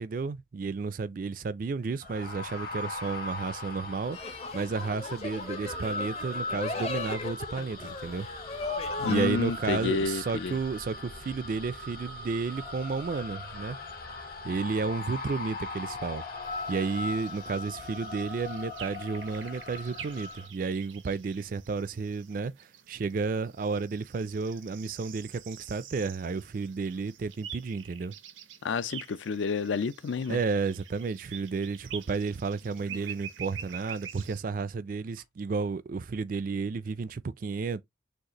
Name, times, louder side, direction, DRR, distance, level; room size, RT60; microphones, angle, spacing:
voice 1, 0.0-8.3 9.0-13.8 14.4-16.2 16.7-22.5 22.9-28.1 30.3-37.8, right 4 dB, 45° right, 0.3 m, -32 dB
sound 1, 2.0-20.5, left 2 dB, 50° left, 1.1 m, -39 dB
sound 2, 4.1-9.3, left 3 dB, 35° left, 0.6 m, -36 dB
voice 2, 9.0-10.6 28.6-30.4, left 4 dB, 80° left, 0.4 m, -30 dB
sound 3, 16.4-34.4, right 9 dB, 90° right, 0.7 m, -47 dB
6.4 x 2.4 x 2.9 m
head